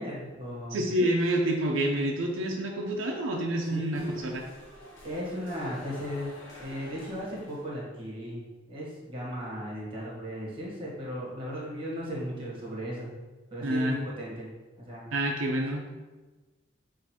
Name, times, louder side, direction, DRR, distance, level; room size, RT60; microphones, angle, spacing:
voice 1, 0.0-0.8 3.7-4.1 5.0-6.3 6.6-13.1 13.5-14.5 14.8-15.1 15.7-15.8, equal, 25° right, -5 dB, 1.3 m, -36 dB
voice 2, 0.7-4.4 13.6-14.0 15.1-15.9, right 1 dB, 80° right, 1 dB, 0.5 m, -28 dB
sound 1, 3.9-7.7, left 1 dB, 75° left, 1.0 m, -47 dB
6.2 x 2.5 x 2.9 m, 1.2 s
head